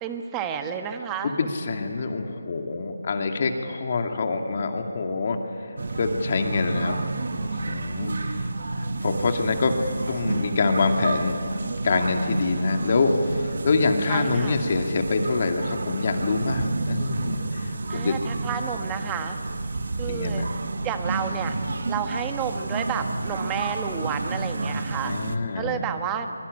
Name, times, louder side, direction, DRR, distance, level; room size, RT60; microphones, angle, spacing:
voice 1, 0.0-1.5 14.1-14.6 17.9-19.4 20.0-20.4 20.8-21.5 21.9-25.2 25.5-26.3, right 7 dB, 10° right, 6 dB, 1.3 m, -31 dB
voice 2, 1.2-7.1 7.4-8.5 9.0-9.8 10.1-11.4 11.8-18.2 20.1-20.5 25.0-25.8, left 3 dB, 40° left, 4 dB, 2.4 m, -25 dB
sound 1, 5.8-25.4, right 2 dB, 60° right, 1.6 m, -30 dB
24.0 x 23.0 x 9.9 m, 2.5 s
figure-of-eight pair, 165°, 0 cm